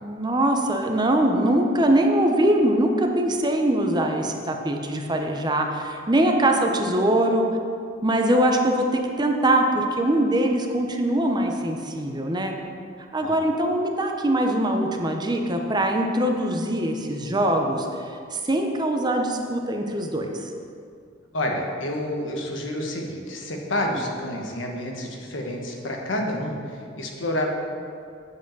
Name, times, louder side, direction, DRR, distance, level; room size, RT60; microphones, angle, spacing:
voice 1, 0.0-7.4 8.0-12.5 13.1-17.9 18.3-20.5 23.9-24.0, right 1 dB, 20° right, 3 dB, 0.7 m, -22 dB
voice 2, 21.3-27.5, left 1 dB, 70° left, 1 dB, 1.3 m, -29 dB
8.2 x 5.0 x 7.5 m, 2.4 s
head